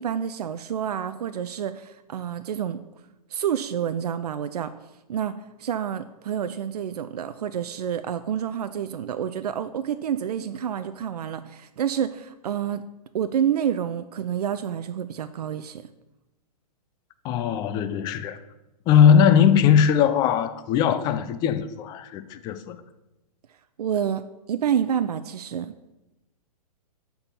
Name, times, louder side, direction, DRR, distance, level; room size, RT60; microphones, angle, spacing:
voice 1, 0.0-2.8 3.3-4.7 5.1-12.8 13.1-15.8 23.8-25.7, right 9 dB, 80° right, 0.4 m, -28 dB
voice 2, 17.2-18.4 18.9-22.8, left 8 dB, 20° left, 0.4 m, -19 dB
6.7 x 4.5 x 5.5 m
hypercardioid pair, 125°, 20 cm